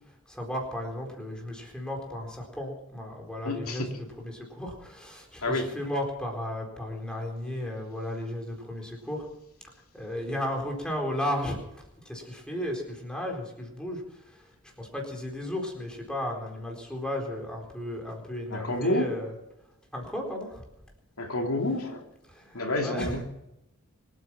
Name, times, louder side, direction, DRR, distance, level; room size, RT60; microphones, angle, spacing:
voice 1, 0.3-3.9 4.2-9.3 9.9-14.5 14.8-19.3 19.9-20.6 22.3-23.2, left 1 dB, 5° left, 0 dB, 4.2 m, -34 dB
voice 2, 3.4-3.9 5.4-5.7 18.5-19.1 21.2-22.1 22.5-23.2, left 1 dB, 80° left, 2 dB, 2.8 m, -29 dB
25.0 x 9.3 x 6.0 m, 0.86 s
head